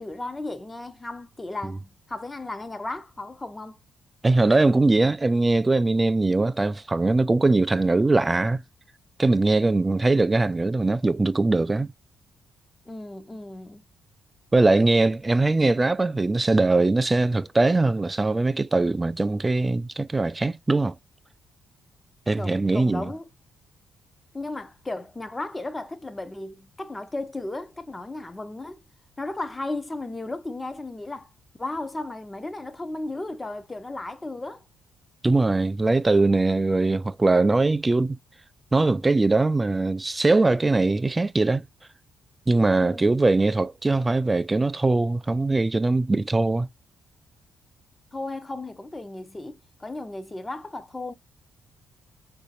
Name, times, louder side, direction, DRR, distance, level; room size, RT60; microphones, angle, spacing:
voice 1, 0.0-3.8 12.9-13.8 22.4-23.3 24.3-28.8 29.2-31.3 31.6-34.6 42.8-43.2 48.1-51.1, left 2 dB, 15° left, 0.7 m, -35 dB
voice 2, 4.2-8.6 9.2-11.9 14.5-21.0 22.3-23.1 35.2-38.2 38.7-41.6 42.5-46.7, right 2 dB, 20° right, 0.3 m, -21 dB
3.8 x 2.7 x 2.5 m
cardioid pair, 90°, 0 cm